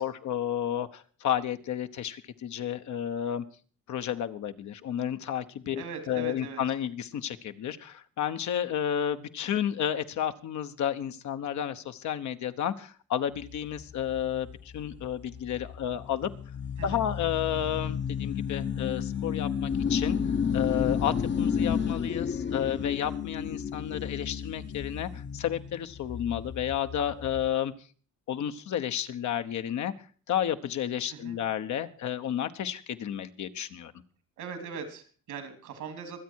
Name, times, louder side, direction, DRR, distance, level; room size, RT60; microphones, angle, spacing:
voice 1, 0.0-3.4 3.9-14.5 14.7-16.3 16.8-20.2 20.5-27.7 28.3-29.9 30.3-33.9, left 10 dB, 70° left, 9 dB, 1.2 m, -31 dB
voice 2, 5.7-6.6 16.8-17.0 31.1-31.4 34.4-36.2, right 6 dB, 85° right, 8 dB, 3.3 m, -40 dB
sound 1, 13.4-27.6, left 7 dB, 40° left, 0.9 m, -32 dB
24.0 x 8.5 x 4.7 m, 0.40 s
cardioid pair, 90°, 30 cm